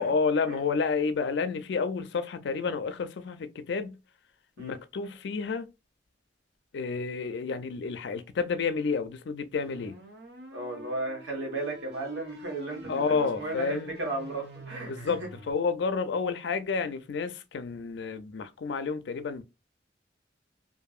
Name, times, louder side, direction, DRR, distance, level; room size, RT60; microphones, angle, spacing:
voice 1, 0.0-4.0 4.6-5.7 6.7-10.0 12.9-13.9 14.8-19.4, left 5 dB, 70° left, 0.4 m, -30 dB
sound 1, 9.5-15.5, right 1 dB, 65° right, 0.8 m, -47 dB
voice 2, 10.5-15.1, right 2 dB, 85° right, 1.5 m, -35 dB
2.7 x 2.5 x 2.3 m
head